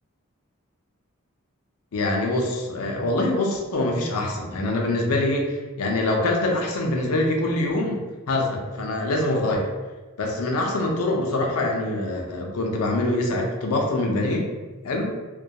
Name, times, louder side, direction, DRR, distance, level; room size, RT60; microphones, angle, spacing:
voice 1, 1.9-8.0 8.3-9.7 10.2-14.5 14.8-15.2, left 2 dB, 80° left, 1 dB, 0.5 m, -24 dB
2.2 x 2.2 x 2.7 m, 1.3 s
head